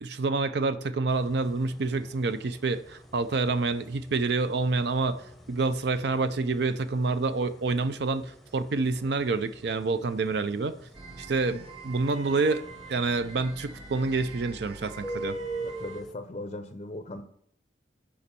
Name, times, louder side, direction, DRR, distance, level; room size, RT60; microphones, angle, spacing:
voice 1, 0.0-10.8 11.2-12.6 12.9-15.4, right 3 dB, 60° right, 0.5 m, -28 dB
sound 1, 1.1-16.1, right 2 dB, ahead, 0.7 m, -45 dB
sound 2, 10.9-16.0, right 3 dB, 30° right, 0.8 m, -45 dB
voice 2, 15.6-17.2, left 2 dB, 35° left, 0.5 m, -38 dB
7.1 x 5.1 x 6.8 m
head